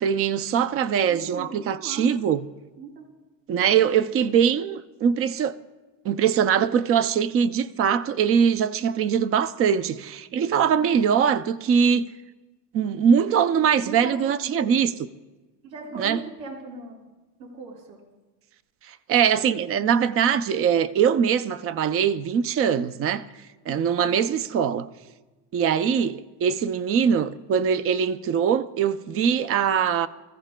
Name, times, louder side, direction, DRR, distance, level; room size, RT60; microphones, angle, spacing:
voice 1, 0.0-2.5 3.5-5.6 6.0-12.0 12.7-14.9 15.9-16.2 18.9-23.3 23.7-24.9 25.5-30.1, right 7 dB, 30° right, 0.4 m, -22 dB
voice 2, 1.1-2.2 2.8-3.1 13.8-14.7 15.6-17.0 17.4-18.0, right 4 dB, 75° right, 5.8 m, -38 dB
27.5 x 15.0 x 2.2 m
cardioid pair, 150°, 46 cm